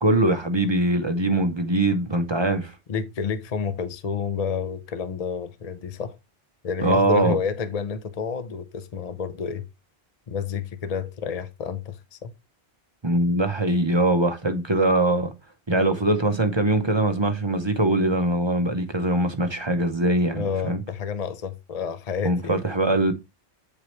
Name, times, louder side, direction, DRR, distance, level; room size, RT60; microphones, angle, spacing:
voice 1, 0.0-2.7 6.8-7.4 13.0-15.3 15.7-20.8 22.2-23.1, right 1 dB, 25° right, 0.8 m, -22 dB
voice 2, 2.9-6.2 6.6-9.7 10.3-12.3 20.3-22.6, left 6 dB, 45° left, 0.6 m, -29 dB
8.7 x 4.8 x 3.1 m
omnidirectional pair, 1.1 m